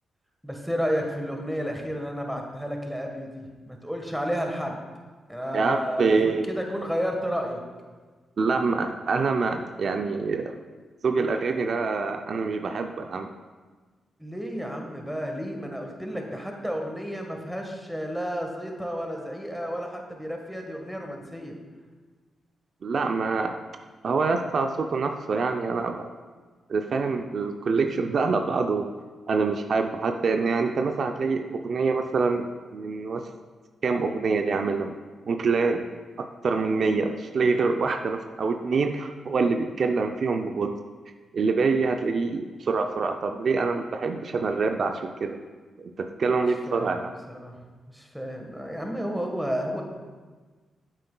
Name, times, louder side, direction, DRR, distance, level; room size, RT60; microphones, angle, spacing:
voice 1, 0.4-4.8 5.3-6.2 6.4-7.6 14.2-21.6 46.7-49.8, equal, ahead, 2 dB, 1.3 m, -32 dB
voice 2, 5.5-6.5 8.4-10.5 11.0-13.3 22.8-23.6 24.0-26.1 26.7-28.9 29.3-33.3 33.8-35.0 35.3-35.9 36.2-40.8 41.3-45.4 45.8-47.1, right 4 dB, 60° right, 5 dB, 0.4 m, -25 dB
8.9 x 7.6 x 2.2 m, 1.4 s
cardioid pair, 65°, 0 cm